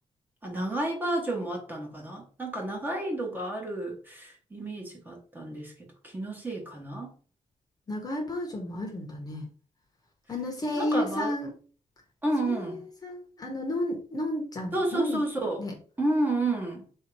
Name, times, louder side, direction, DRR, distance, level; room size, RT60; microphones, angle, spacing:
voice 1, 0.4-5.7 6.0-7.1 10.7-11.4 12.2-12.8 14.7-15.6 16.0-16.8, right 1 dB, 15° right, 1.1 m, -31 dB
voice 2, 7.9-9.5 10.3-11.5 12.4-12.8 13.0-15.2 15.6-15.7, left 1 dB, 30° left, 0.9 m, -32 dB
3.6 x 2.8 x 4.5 m
wide cardioid pair, 155°, 13 cm